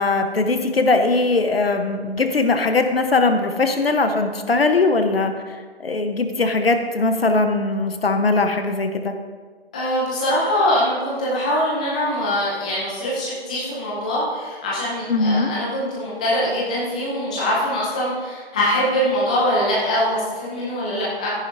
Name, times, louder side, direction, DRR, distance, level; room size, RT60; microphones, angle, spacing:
voice 1, 0.0-9.1 15.1-15.5, left 3 dB, 60° left, 6 dB, 1.2 m, -20 dB
voice 2, 9.7-21.3, equal, 5° left, -7 dB, 0.7 m, -23 dB
13.5 x 10.5 x 2.8 m, 1.5 s
figure-of-eight pair, 155°, 33 cm